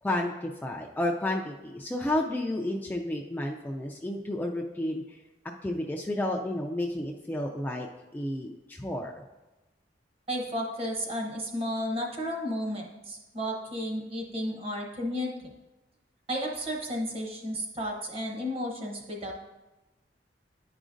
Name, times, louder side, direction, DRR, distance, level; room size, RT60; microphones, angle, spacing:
voice 1, 0.0-5.2 5.6-7.9 8.1-9.2, left 1 dB, 10° left, 0 dB, 0.3 m, -31 dB
voice 2, 10.3-15.5 16.3-19.3, equal, 35° right, 1 dB, 0.9 m, -33 dB
9.8 x 5.0 x 2.5 m, 1.1 s
head